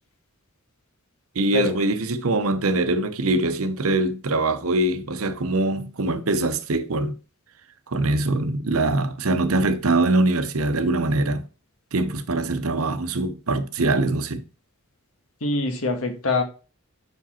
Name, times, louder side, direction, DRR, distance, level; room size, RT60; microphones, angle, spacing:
voice 1, 1.3-7.2 7.9-11.4 11.9-14.4, right 2 dB, 75° right, 0.8 m, -23 dB
voice 2, 15.4-16.4, left 2 dB, 75° left, 1.4 m, -24 dB
6.7 x 4.9 x 4.3 m
head